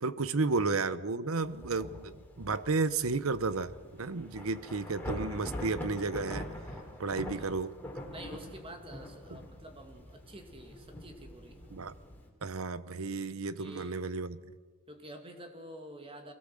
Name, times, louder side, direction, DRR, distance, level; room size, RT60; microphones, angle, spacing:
voice 1, 0.0-3.7 4.0-6.5 7.0-7.7 11.7-11.9 12.4-14.4, right 3 dB, 65° right, 15 dB, 0.9 m, -32 dB
Thunder / Rain, 1.4-12.3, left 1 dB, 10° left, 3.1 m, -44 dB
voice 2, 8.1-11.6 13.4-14.1 14.9-16.3, right 1 dB, 25° right, 5 dB, 2.3 m, -48 dB
22.5 x 17.0 x 7.7 m, 1.5 s
head